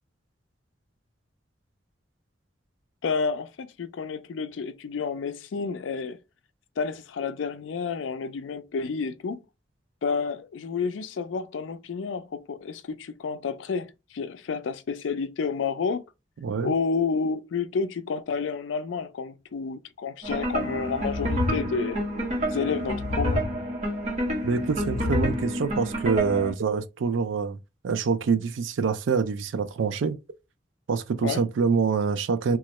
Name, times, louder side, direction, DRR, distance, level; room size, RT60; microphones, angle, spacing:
voice 1, 3.0-6.2 6.8-9.4 10.0-16.0 16.6-22.0 22.5-23.4 31.2-31.4, left 5 dB, 85° left, 0.4 m, -30 dB
voice 2, 16.4-16.7 24.4-27.6 27.8-30.2 30.9-32.6, right 5 dB, 90° right, 0.4 m, -25 dB
sound 1, 20.2-26.5, equal, 40° right, 1.2 m, -28 dB
3.0 x 2.4 x 2.9 m
head